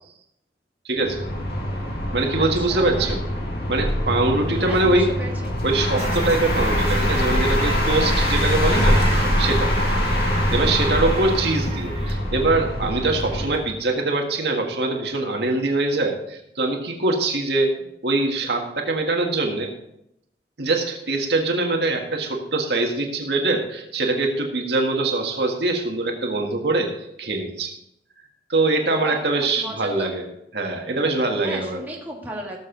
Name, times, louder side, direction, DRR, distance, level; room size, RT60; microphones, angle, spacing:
voice 1, 0.8-1.2 2.1-3.2 3.7-5.1 5.6-9.0 9.4-9.7 10.5-17.7 18.0-19.7 20.6-27.7 28.5-30.2 30.5-31.8, right 2 dB, 65° right, 2 dB, 1.7 m, -23 dB
sound 1, 1.0-13.7, equal, 55° left, 2.0 m, -23 dB
voice 2, 2.3-3.2 4.6-5.5 29.0-30.1 31.4-32.6, right 1 dB, 10° right, -2 dB, 1.8 m, -35 dB
sound 2, 6.0-12.1, right 3 dB, 35° right, 1.6 m, -35 dB
17.5 x 7.2 x 3.9 m, 0.80 s
head